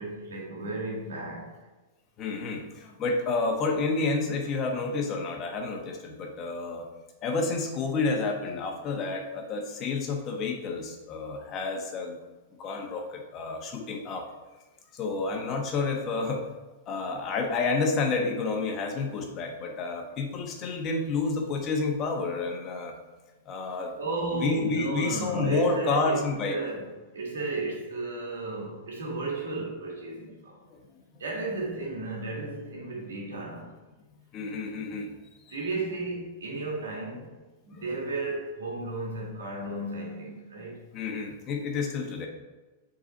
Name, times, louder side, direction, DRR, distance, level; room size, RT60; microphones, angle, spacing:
voice 1, 0.0-1.6 24.0-30.6 31.2-33.7 35.5-37.3 37.6-40.8, right 2 dB, 85° right, -2 dB, 1.9 m, -34 dB
voice 2, 2.2-6.8 7.2-12.2 12.6-14.2 14.9-16.4 16.9-22.9 23.5-24.0 24.4-26.6 30.7-30.8 34.3-35.1 35.5-35.6 40.9-42.3, left 3 dB, 35° left, 2 dB, 1.1 m, -29 dB
6.0 x 4.0 x 4.1 m, 1.2 s
hypercardioid pair, 120°, 0 cm